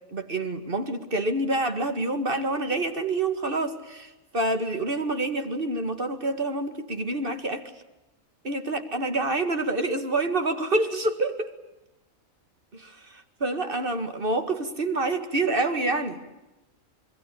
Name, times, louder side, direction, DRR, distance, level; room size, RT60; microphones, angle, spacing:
voice 1, 0.1-7.6 8.4-11.5 12.7-16.2, right 2 dB, 40° right, 7 dB, 2.2 m, -27 dB
26.5 x 22.5 x 8.7 m, 1.0 s
omnidirectional pair, 1.4 m